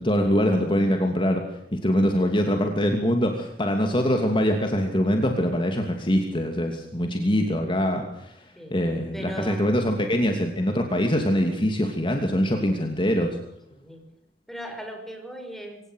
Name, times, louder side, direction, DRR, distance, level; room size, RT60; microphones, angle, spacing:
voice 1, 0.0-1.4 1.7-8.4 8.7-13.4, equal, 30° left, 4 dB, 2.8 m, -23 dB
voice 2, 9.1-9.7 13.7-14.0 14.5-15.8, equal, ahead, 5 dB, 5.5 m, -38 dB
25.5 x 17.5 x 6.5 m, 0.77 s
head